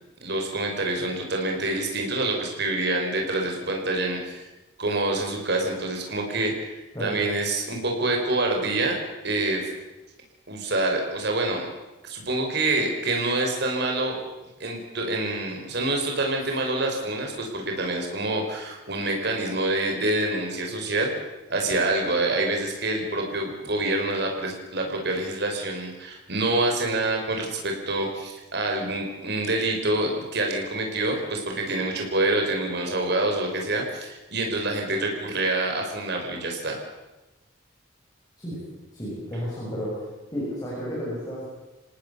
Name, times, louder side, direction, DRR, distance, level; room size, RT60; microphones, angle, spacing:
voice 1, 0.2-4.5 4.8-9.0 9.2-9.7 10.5-11.6 12.0-14.2 14.6-21.1 21.5-36.8, right 2 dB, 55° right, 2 dB, 5.4 m, -26 dB
voice 2, 6.9-7.3 38.4-38.6 38.9-40.1 40.3-41.5, equal, 20° left, -6 dB, 7.3 m, -32 dB
26.5 x 18.0 x 7.1 m, 1.1 s
head